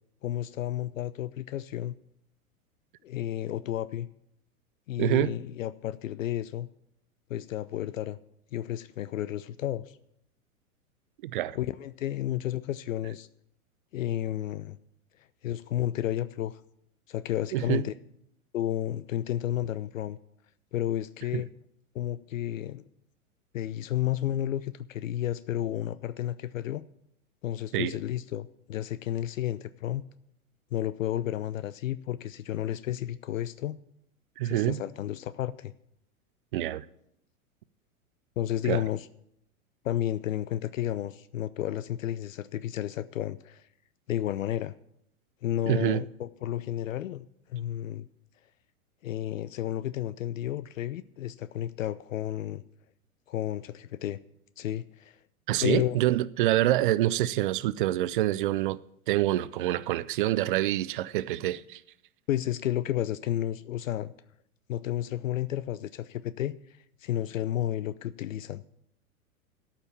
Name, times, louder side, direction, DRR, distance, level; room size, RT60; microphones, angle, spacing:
voice 1, 0.2-2.0 3.0-4.1 4.9-6.7 7.3-8.2 8.5-9.9 11.5-13.3 13.9-14.8 15.4-16.6 17.1-17.9 18.5-20.2 20.7-21.5 21.9-22.8 23.5-26.8 27.4-30.0 30.7-33.8 34.4-35.7 38.4-39.1 39.8-43.6 44.1-44.7 45.4-48.1 49.0-52.6 53.3-54.2 54.6-55.2 55.6-56.0 62.3-64.1 64.7-66.6 67.0-68.6, left 12 dB, 65° left, 0.5 m, -32 dB
voice 2, 5.0-5.3 11.2-11.6 17.5-17.8 21.3-21.4 27.7-28.0 34.4-34.8 36.5-36.8 38.7-38.8 45.7-46.0 55.5-58.8 59.1-61.8, right 14 dB, 40° right, 0.4 m, -26 dB
13.0 x 5.8 x 7.1 m
figure-of-eight pair, 100°, 43 cm